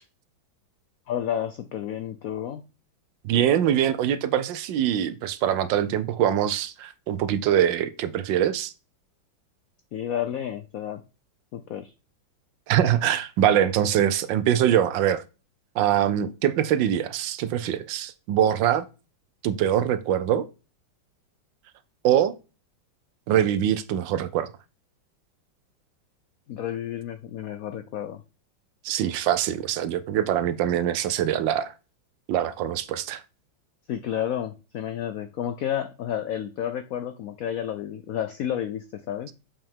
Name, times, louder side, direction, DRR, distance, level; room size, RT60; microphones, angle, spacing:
voice 1, 1.1-2.6 9.9-11.0 11.5-11.9 26.5-28.2 33.9-39.3, left 10 dB, 80° left, 0.7 m, -31 dB
voice 2, 3.2-8.7 12.7-15.2 15.8-18.8 19.4-20.5 22.0-22.4 23.3-24.5 28.8-31.7 32.3-33.2, right 10 dB, 75° right, 1.3 m, -23 dB
7.1 x 5.5 x 3.5 m
omnidirectional pair, 2.1 m